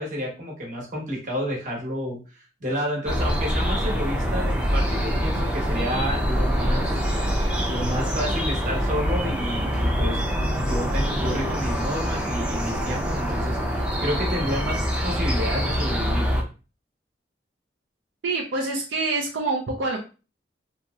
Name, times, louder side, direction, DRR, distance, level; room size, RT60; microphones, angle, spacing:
voice 1, 0.0-2.2 2.6-7.0 7.7-10.2 10.5-16.3, equal, 45° right, -1 dB, 1.1 m, -30 dB
sound 1, 3.0-16.4, equal, 5° right, 0.5 m, -25 dB
voice 2, 18.2-20.0, right 3 dB, 80° right, 0 dB, 0.5 m, -26 dB
2.9 x 2.8 x 2.3 m, 0.33 s
head